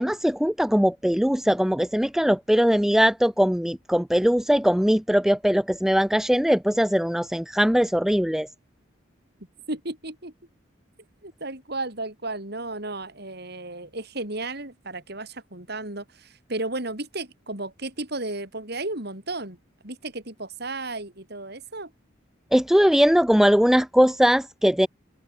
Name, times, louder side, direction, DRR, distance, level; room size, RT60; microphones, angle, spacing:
voice 1, 0.0-8.5 22.5-24.9, equal, ahead, 0.6 m, -20 dB
voice 2, 9.7-10.3 11.2-19.6 19.8-21.9, right 2 dB, 55° right, 6.0 m, -34 dB
open air
head